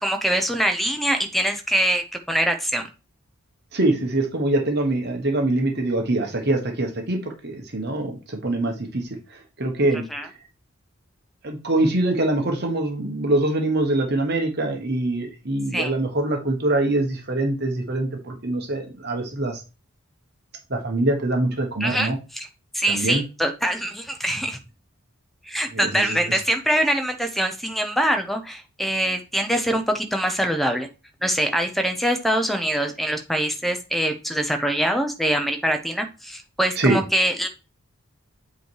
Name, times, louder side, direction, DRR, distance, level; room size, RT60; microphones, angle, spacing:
voice 1, 0.0-2.8 10.1-10.3 15.7-15.9 21.8-22.5 22.7-24.6 25.4-30.9 31.2-37.5, equal, ahead, 5 dB, 0.7 m, -24 dB
voice 2, 3.7-9.0 9.6-10.0 11.4-19.6 20.7-22.2 22.9-23.2 25.7-26.2 36.8-37.0, right 2 dB, 50° right, 3 dB, 1.2 m, -24 dB
8.0 x 3.1 x 4.7 m, 0.31 s
head